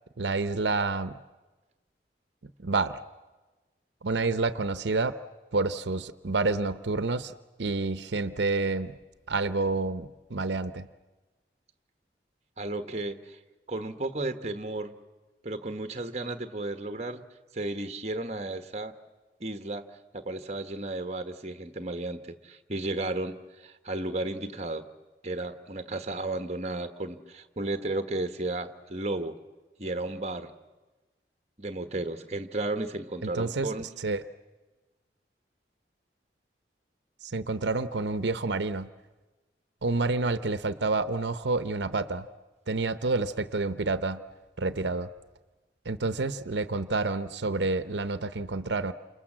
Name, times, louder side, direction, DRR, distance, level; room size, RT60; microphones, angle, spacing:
voice 1, 0.2-1.2 2.6-3.0 4.0-5.2 5.5-7.3 7.6-8.9 9.3-10.9 33.2-34.2 37.2-38.9 39.8-42.3 42.7-44.2 44.6-45.1 45.8-48.9, right 3 dB, 80° right, 12 dB, 0.8 m, -29 dB
voice 2, 12.6-13.4 13.7-14.9 15.4-17.2 17.5-18.9 19.4-19.8 20.1-24.9 25.2-29.4 29.8-30.5 31.6-33.9, right 2 dB, 35° right, 8 dB, 1.3 m, -33 dB
29.0 x 27.5 x 7.5 m, 1.2 s
head